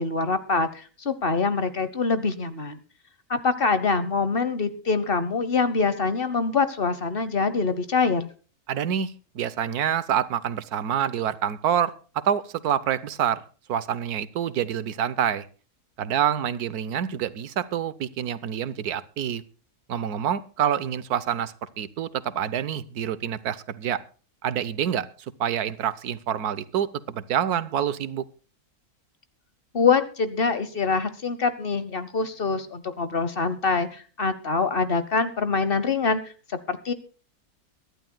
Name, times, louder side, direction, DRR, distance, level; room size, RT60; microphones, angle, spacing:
voice 1, 0.0-2.8 3.3-8.3 29.7-36.9, left 4 dB, 40° left, 13 dB, 1.1 m, -25 dB
voice 2, 8.7-13.4 13.7-15.5 16.0-19.4 19.9-24.0 24.4-25.1 25.4-28.2, right 9 dB, 90° right, 16 dB, 1.4 m, -27 dB
23.5 x 11.5 x 2.2 m, 0.38 s
omnidirectional pair, 1.6 m